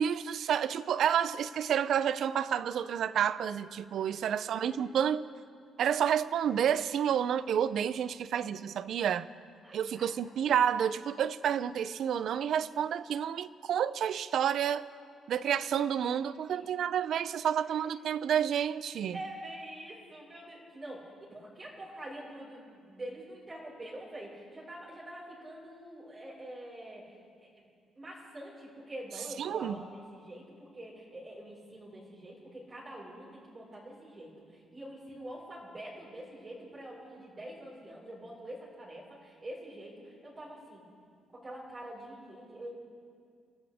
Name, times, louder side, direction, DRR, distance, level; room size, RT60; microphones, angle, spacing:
voice 1, 0.0-5.2 5.8-9.3 9.7-14.8 15.3-19.2 29.4-29.8, right 9 dB, 70° right, 0.5 m, -29 dB
voice 2, 4.4-4.8 8.3-8.6 9.6-10.0 19.1-27.1 27.4-27.5 27.9-40.8 41.3-42.7, right 1 dB, 35° right, 4.8 m, -45 dB
28.5 x 13.5 x 3.5 m
cardioid pair, 90°, 0 cm